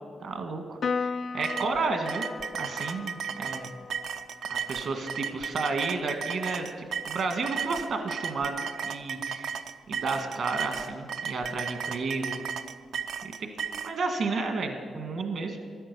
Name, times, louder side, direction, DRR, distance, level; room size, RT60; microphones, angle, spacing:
voice 1, 0.2-2.3 2.5-3.7 4.5-9.5 9.9-12.5 13.2-13.5 13.7-15.6, right 3 dB, 65° right, 5 dB, 1.6 m, -32 dB
Piano, 0.8-7.5, left 5 dB, 55° left, 0.4 m, -38 dB
sound 1, 1.4-13.9, right 7 dB, 90° right, 0.5 m, -35 dB
12.5 x 9.9 x 6.8 m, 2.1 s
wide cardioid pair, 125°, 0 cm